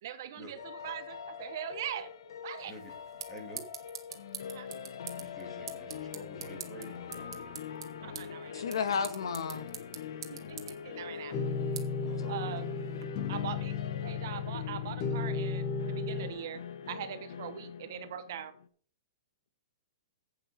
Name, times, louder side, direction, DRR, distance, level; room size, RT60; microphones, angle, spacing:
voice 1, 0.0-2.1 2.4-2.7 4.5-4.7 8.0-8.6 10.3-11.4 12.3-12.7 13.3-16.6 16.9-18.5, right 10 dB, 40° right, 1.1 m, -41 dB
sound 1, 0.6-18.7, left 7 dB, 60° left, 1.3 m, -44 dB
sound 2, 2.6-13.0, right 8 dB, 60° right, 1.9 m, -47 dB
voice 2, 3.3-3.6 5.2-7.6 10.9-11.4 12.1-12.6, equal, 10° left, 2.8 m, -49 dB
voice 3, 8.5-9.7 12.0-12.6, left 6 dB, 85° left, 1.6 m, -34 dB
sound 3, 11.3-16.3, left 5 dB, 25° left, 1.3 m, -34 dB
11.0 x 8.6 x 4.2 m
hypercardioid pair, 180°, 3 cm